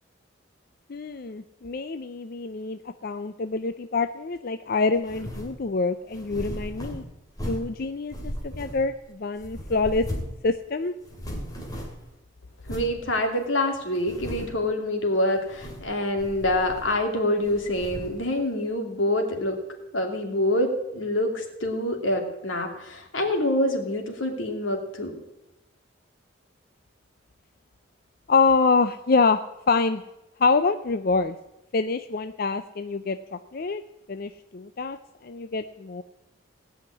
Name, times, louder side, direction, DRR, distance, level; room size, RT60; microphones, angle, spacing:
voice 1, 0.9-7.0 7.4-10.1 10.4-10.9 28.3-29.4 29.7-30.0 30.4-31.4 31.7-33.8 34.1-35.0 35.2-36.0, left 4 dB, 50° left, 10 dB, 0.5 m, -26 dB
sound 1, 5.0-5.6 6.1-7.8 8.1-9.1 9.4-10.4 10.7-10.8 11.0-12.1 12.6-13.0 13.5-13.6 14.0-14.6 15.4-15.9 16.2-17.1 17.4-18.2, equal, 20° left, 2.6 m, -36 dB
voice 2, 12.7-19.6 19.9-25.2, left 1 dB, 80° left, 4 dB, 2.5 m, -26 dB
17.5 x 5.8 x 9.7 m, 0.93 s
head